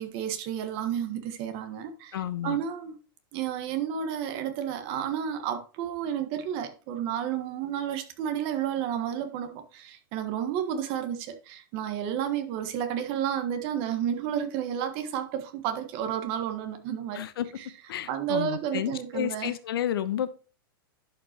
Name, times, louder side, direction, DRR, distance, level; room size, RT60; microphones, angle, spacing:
voice 1, 0.0-2.2 2.4-3.0 3.3-17.2 18.1-19.5, right 9 dB, 45° right, 1.4 m, -31 dB
voice 2, 2.1-2.6 17.1-17.5 17.9-20.3, left 10 dB, 75° left, 0.9 m, -31 dB
11.5 x 5.1 x 3.0 m
hypercardioid pair, 130°, 12 cm